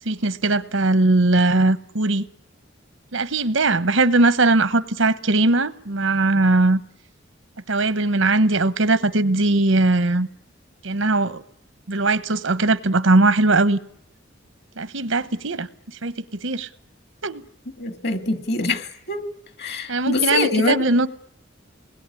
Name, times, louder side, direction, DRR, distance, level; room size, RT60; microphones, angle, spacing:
voice 1, 0.0-2.3 3.1-6.8 7.7-10.3 10.8-11.4 11.9-13.8 14.8-15.7 16.0-16.7 17.2-17.4 19.9-21.1, right 2 dB, 80° right, 1.1 m, -19 dB
voice 2, 17.8-19.2 19.6-20.7, left 3 dB, 55° left, 2.0 m, -24 dB
28.0 x 20.5 x 9.8 m
head